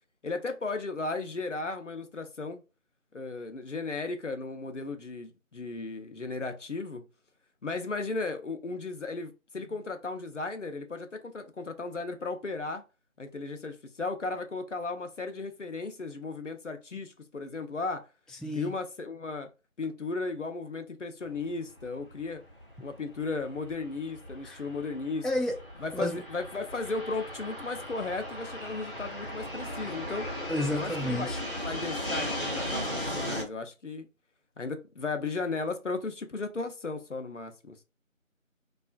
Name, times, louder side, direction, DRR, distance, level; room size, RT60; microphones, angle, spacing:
voice 1, 0.2-2.6 3.1-7.0 7.6-12.8 13.2-18.1 18.5-19.5 19.8-22.4 22.8-25.3 25.8-30.3 30.7-31.3 31.6-34.1 34.6-37.8, left 3 dB, 65° left, 0.5 m, -35 dB
voice 2, 18.4-18.7 24.4-24.6 25.2-25.6 25.9-26.2 30.5-31.4, left 1 dB, ahead, 0.3 m, -30 dB
Fixed-wing aircraft airplane, 21.2-33.4, left 1 dB, 40° right, 0.7 m, -37 dB
2.4 x 2.3 x 2.3 m
figure-of-eight pair, 180°, 40 cm